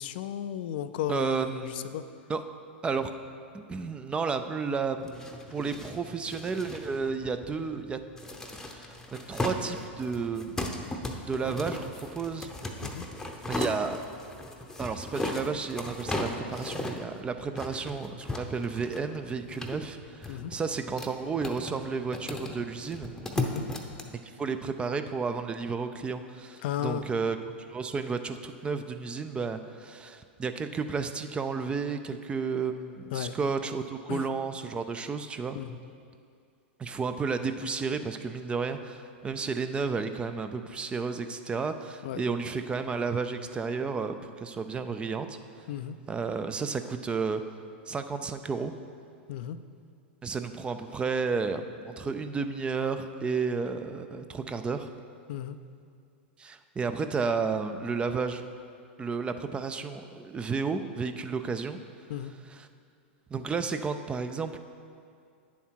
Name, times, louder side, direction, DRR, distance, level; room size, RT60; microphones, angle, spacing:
voice 1, 0.0-2.0 12.8-13.0 20.3-20.5 23.4-23.7 26.6-27.1 33.1-33.4 34.1-34.3 35.5-35.8 42.0-42.2 45.7-46.0 49.3-49.6 55.3-55.6 62.1-62.3, left 10 dB, 60° left, 11 dB, 0.4 m, -34 dB
voice 2, 1.1-1.8 2.3-2.4 2.8-3.1 3.5-8.0 8.5-10.6 11.2-12.5 13.5-14.0 14.8-23.1 24.2-27.4 27.7-35.6 36.8-45.4 46.1-47.4 47.9-48.7 50.2-54.9 56.4-58.5 59.0-61.8 62.5-62.7 63.3-64.6, right 5 dB, 15° right, 9 dB, 0.4 m, -32 dB
sound 1, 5.0-24.0, left 1 dB, 10° left, 0.8 m, -37 dB
9.2 x 7.2 x 4.6 m, 2.4 s
hypercardioid pair, 115°, 6 cm